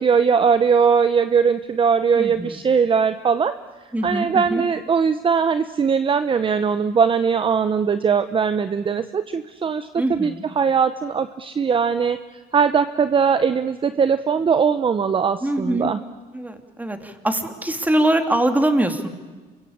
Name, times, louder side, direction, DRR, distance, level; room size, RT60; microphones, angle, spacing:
voice 1, 0.0-3.6 4.0-12.2 12.5-16.0, right 6 dB, 30° right, 12 dB, 0.9 m, -20 dB
voice 2, 2.2-2.6 3.9-4.6 10.0-10.4 15.4-16.0 16.3-19.1, right 1 dB, 10° right, 7 dB, 2.8 m, -23 dB
27.5 x 23.0 x 8.7 m, 1.3 s
cardioid pair, 110°, 17 cm